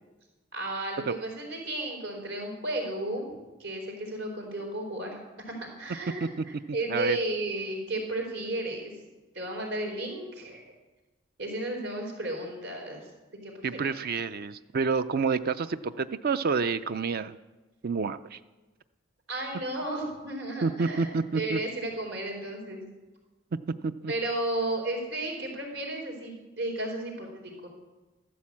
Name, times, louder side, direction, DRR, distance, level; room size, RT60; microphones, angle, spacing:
voice 1, 0.5-3.3 3.6-8.9 9.3-10.6 11.4-13.1 13.4-13.9 19.3-22.8 24.1-27.7, right 1 dB, 75° right, 1 dB, 4.2 m, -33 dB
voice 2, 13.6-17.4 17.8-18.4 20.6-21.6 23.8-24.1, right 4 dB, 50° right, 12 dB, 0.5 m, -29 dB
13.5 x 13.0 x 7.4 m, 1.2 s
head